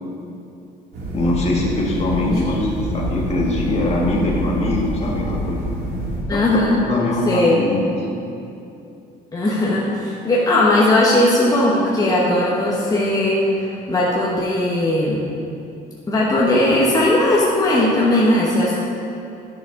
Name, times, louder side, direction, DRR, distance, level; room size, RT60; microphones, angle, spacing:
sound 1, 0.9-6.2, right 1 dB, 85° right, 1.9 m, -26 dB
voice 1, 1.1-5.6 6.3-8.2, left 2 dB, 40° left, -3 dB, 1.5 m, -22 dB
voice 2, 2.3-2.7 6.3-6.8 7.3-7.6 9.3-15.3 16.1-18.8, left 1 dB, 20° left, -5 dB, 1.1 m, -18 dB
10.5 x 6.0 x 3.8 m, 2.7 s
cardioid pair, 110°, 17 cm